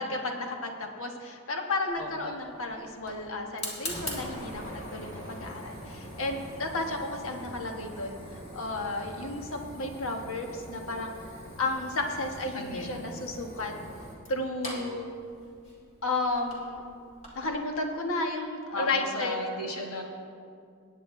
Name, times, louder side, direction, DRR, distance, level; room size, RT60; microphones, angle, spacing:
voice 1, 0.0-8.2 8.5-11.1 11.6-13.7 14.3-15.1 16.0-16.9 17.3-19.4, left 2 dB, 65° left, 3 dB, 1.3 m, -33 dB
Fire, 1.9-17.6, equal, 30° left, 2.5 m, -43 dB
voice 2, 2.0-2.4 12.5-13.1 18.7-20.0, left 1 dB, 85° left, 1 dB, 1.6 m, -35 dB
19.5 x 9.0 x 3.2 m, 2.3 s
head